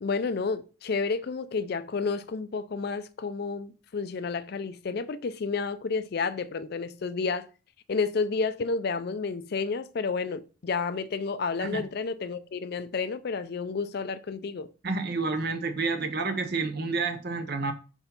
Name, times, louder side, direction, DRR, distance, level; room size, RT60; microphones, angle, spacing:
voice 1, 0.0-7.5 7.9-14.7, left 4 dB, 50° left, 0.4 m, -30 dB
voice 2, 14.8-17.7, right 4 dB, 50° right, 0.8 m, -29 dB
4.6 x 4.3 x 5.3 m
head